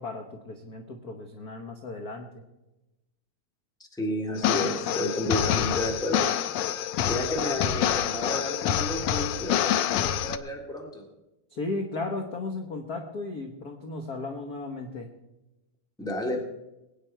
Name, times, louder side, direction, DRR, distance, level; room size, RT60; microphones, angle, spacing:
voice 1, 0.0-2.4 11.5-15.1, left 3 dB, 55° left, 4 dB, 1.0 m, -35 dB
voice 2, 4.0-6.3 7.1-11.1 16.0-16.4, left 1 dB, ahead, 1 dB, 1.3 m, -31 dB
sound 1, 4.4-10.4, left 10 dB, 90° left, 1.3 m, -27 dB
21.5 x 9.5 x 4.4 m, 0.99 s
omnidirectional pair, 3.3 m